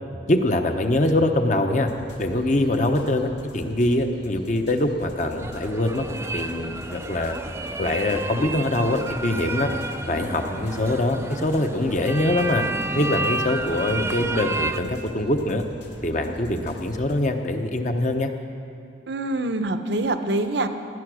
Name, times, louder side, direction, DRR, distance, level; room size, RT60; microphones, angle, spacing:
voice 1, 0.3-1.9 2.2-6.0 6.3-7.4 7.8-9.7 10.1-12.6 12.9-15.6 16.0-18.3, left 1 dB, 40° left, 5 dB, 0.9 m, -23 dB
sound 1, 1.8-17.2, equal, 60° left, 2.0 m, -45 dB
sound 2, 5.2-14.8, right 2 dB, 15° right, 0.4 m, -31 dB
voice 2, 19.1-20.7, right 2 dB, 65° right, 9 dB, 0.8 m, -25 dB
16.5 x 11.0 x 6.2 m, 2.6 s
head